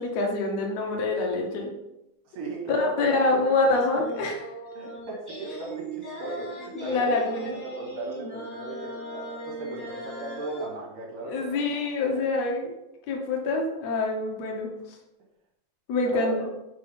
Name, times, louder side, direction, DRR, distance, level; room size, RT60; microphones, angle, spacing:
voice 1, 0.0-1.7 2.7-4.5 6.7-7.5 11.3-12.7 13.1-14.7 15.9-16.4, left 3 dB, 75° left, 1 dB, 1.6 m, -26 dB
voice 2, 2.3-3.3 4.7-7.3 7.6-11.6 12.0-12.2 16.0-16.5, right 2 dB, 75° right, -3 dB, 3.6 m, -36 dB
sound 1, 3.7-10.7, right 1 dB, 25° left, 0.3 m, -38 dB
7.5 x 4.6 x 3.4 m, 0.89 s
omnidirectional pair, 4.3 m